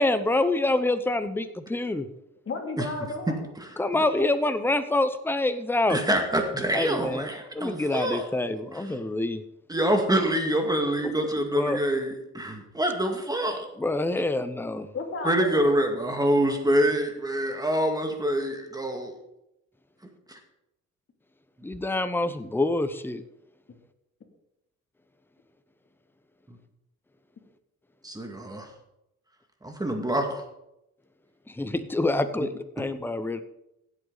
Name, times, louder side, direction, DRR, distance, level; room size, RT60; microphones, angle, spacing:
voice 1, 0.0-2.1 3.8-6.0 6.7-7.3 7.5-9.4 11.0-11.1 11.5-11.8 13.8-14.9 21.6-23.2 31.5-33.4, left 2 dB, 5° left, 10 dB, 0.8 m, -26 dB
voice 2, 2.5-3.3 14.9-15.7, left 3 dB, 45° left, 2 dB, 2.9 m, -33 dB
voice 3, 3.3-4.0 5.9-8.3 8.7-8.9 9.7-13.7 15.2-19.1 20.3-20.4 26.5-26.6 28.0-28.7 29.6-30.4 32.4-32.5, right 1 dB, 10° right, 4 dB, 2.1 m, -26 dB
16.0 x 8.1 x 4.0 m, 0.86 s
cardioid pair, 90°, 30 cm